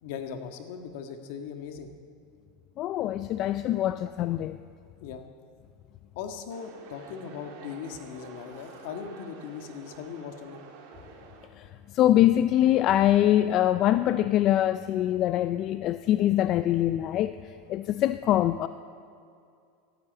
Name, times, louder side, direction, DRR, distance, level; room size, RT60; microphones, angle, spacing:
voice 1, 0.0-1.9 3.9-4.0 5.0-5.2 6.1-10.6, left 7 dB, 65° left, 1.5 m, -39 dB
voice 2, 2.8-4.6 11.5-18.7, left 12 dB, 40° left, 0.4 m, -24 dB
sound 1, 6.5-11.5, right 5 dB, 60° right, 2.7 m, -48 dB
12.5 x 12.0 x 8.7 m
supercardioid pair, 135°, 0 cm